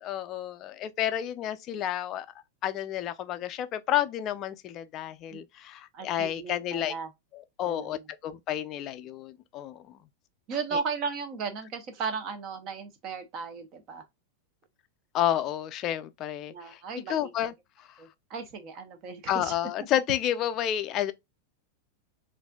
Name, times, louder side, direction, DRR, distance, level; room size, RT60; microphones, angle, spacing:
voice 1, 0.0-2.3 2.6-6.9 7.3-10.0 10.7-10.8 15.1-16.8 17.1-17.5 19.3-21.1, left 11 dB, 30° left, 0.4 m, -30 dB
voice 2, 5.9-7.1 7.6-8.1 10.5-14.0 16.5-17.3 18.0-19.5, right 5 dB, 35° right, 0.9 m, -36 dB
4.2 x 2.6 x 2.2 m
supercardioid pair, 160°, 0 cm